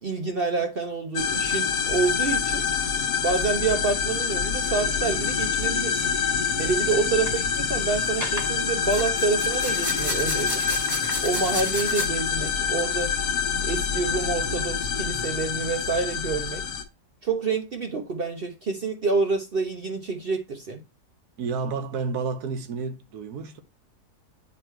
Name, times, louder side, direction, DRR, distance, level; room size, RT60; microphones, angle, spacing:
voice 1, 0.0-2.6 3.2-6.1 6.6-10.6 11.2-13.1 13.6-16.6 17.2-20.8, right 4 dB, 50° right, 0.7 m, -27 dB
sound 1, 1.2-16.8, left 6 dB, 75° left, 1.4 m, -26 dB
sound 2, 7.0-7.3 8.2-8.5 8.8-12.1, left 1 dB, 10° left, 1.3 m, -32 dB
voice 2, 21.4-23.6, right 4 dB, 75° right, 1.3 m, -31 dB
8.5 x 3.1 x 4.4 m
omnidirectional pair, 1.7 m